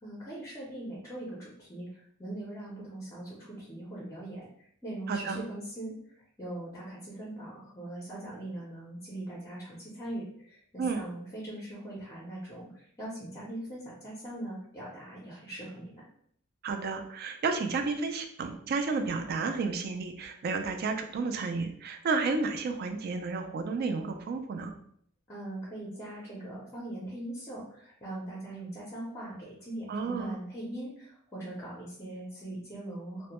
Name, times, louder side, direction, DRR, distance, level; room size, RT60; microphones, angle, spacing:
voice 1, 0.0-16.1 25.3-33.3, right 1 dB, 15° left, -5 dB, 0.5 m, -41 dB
voice 2, 5.1-5.4 10.8-11.0 16.6-24.7 29.9-30.4, right 4 dB, 50° right, 6 dB, 0.3 m, -31 dB
2.1 x 2.0 x 2.9 m, 0.65 s
head